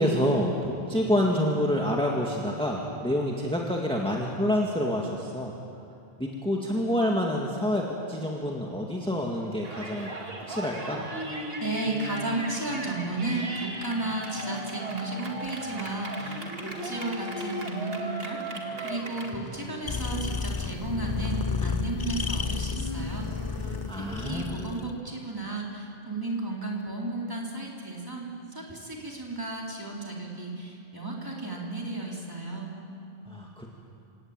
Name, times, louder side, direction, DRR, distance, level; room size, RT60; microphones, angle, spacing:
voice 1, 0.0-5.5 6.2-10.1 10.5-11.0 23.9-24.6 33.3-33.7, equal, 5° left, -2 dB, 1.9 m, -27 dB
Yell, 9.6-19.3, right 2 dB, 70° right, 2.4 m, -38 dB
sound 1, 10.3-24.8, left 1 dB, 60° left, 6.0 m, -42 dB
voice 2, 11.6-23.3 23.9-32.7, right 2 dB, 20° right, -3 dB, 3.9 m, -34 dB
sound 2, 19.9-24.9, left 5 dB, 30° left, 0.4 m, -31 dB
27.0 x 18.0 x 9.0 m, 2.7 s
omnidirectional pair, 1.0 m